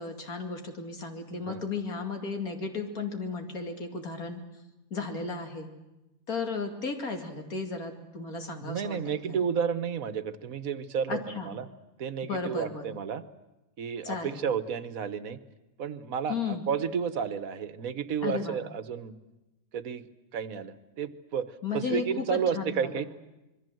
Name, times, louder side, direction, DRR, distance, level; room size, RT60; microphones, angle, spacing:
voice 1, 0.0-4.4 4.9-5.7 6.3-9.4 11.1-11.5 12.2-12.9 14.0-14.4 16.3-16.6 18.2-18.6 21.6-23.0, left 4 dB, 85° left, 4 dB, 3.0 m, -34 dB
voice 2, 8.6-11.7 12.0-13.2 13.8-15.4 15.8-19.1 19.7-20.1 20.3-23.0, right 7 dB, 75° right, 13 dB, 1.5 m, -32 dB
26.5 x 22.0 x 7.8 m, 0.99 s
omnidirectional pair, 1.5 m